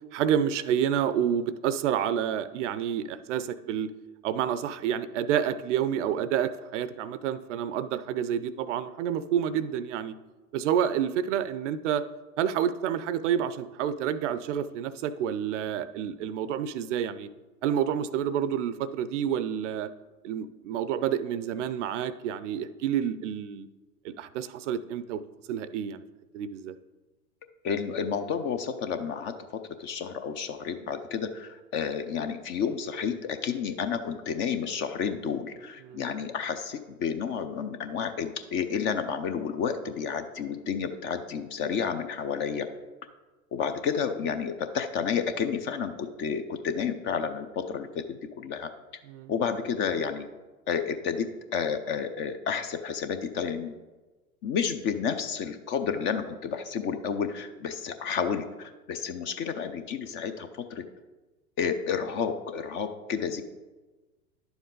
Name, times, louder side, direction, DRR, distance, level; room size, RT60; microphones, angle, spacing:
voice 1, 0.1-3.9 4.2-10.2 10.5-12.0 12.4-17.3 17.6-19.9 20.2-23.7 24.0-25.2 25.5-26.0 26.3-26.7 35.8-36.0 49.1-49.3, right 9 dB, 55° right, 15 dB, 0.6 m, -29 dB
voice 2, 27.6-29.3 29.8-42.7 43.5-48.0 48.4-48.7 49.3-50.2 50.7-53.7 54.4-60.8 61.6-63.4, left 6 dB, 25° left, 9 dB, 0.5 m, -31 dB
10.5 x 7.1 x 3.8 m, 1.2 s
hypercardioid pair, 100°, 45 cm